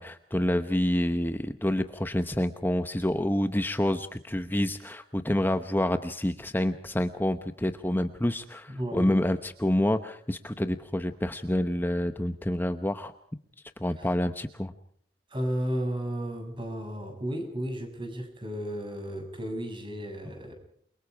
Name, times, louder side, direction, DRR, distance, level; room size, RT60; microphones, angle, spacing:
voice 1, 0.0-13.1 13.8-14.7, left 1 dB, 10° left, 9 dB, 0.9 m, -28 dB
voice 2, 8.7-9.1 14.0-14.1 15.3-20.5, equal, 30° right, 5 dB, 7.2 m, -33 dB
29.5 x 24.0 x 4.7 m, 0.63 s
head